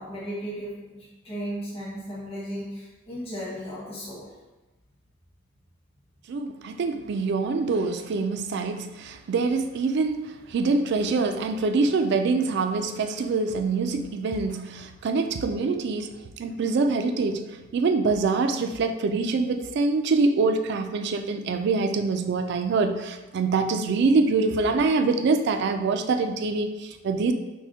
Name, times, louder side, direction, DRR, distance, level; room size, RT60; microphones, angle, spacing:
voice 1, 0.0-4.3, equal, 30° left, -8 dB, 1.2 m, -35 dB
voice 2, 6.3-27.3, right 4 dB, 55° right, 7 dB, 0.3 m, -25 dB
5.7 x 2.1 x 2.7 m, 1.1 s
head